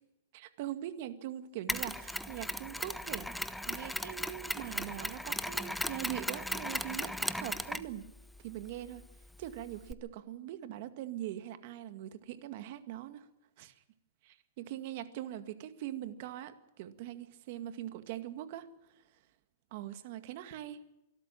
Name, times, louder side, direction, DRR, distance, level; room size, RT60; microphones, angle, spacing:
voice 1, 0.3-8.0 8.4-9.0 9.4-13.3 13.6-13.8 14.2-18.7 18.9-19.0 19.7-20.8, right 12 dB, 50° right, 11 dB, 2.0 m, -42 dB
Mechanisms, 1.7-9.9, left 1 dB, ahead, 0.8 m, -38 dB
24.5 x 13.0 x 8.8 m, 0.91 s
hypercardioid pair, 145°, 0 cm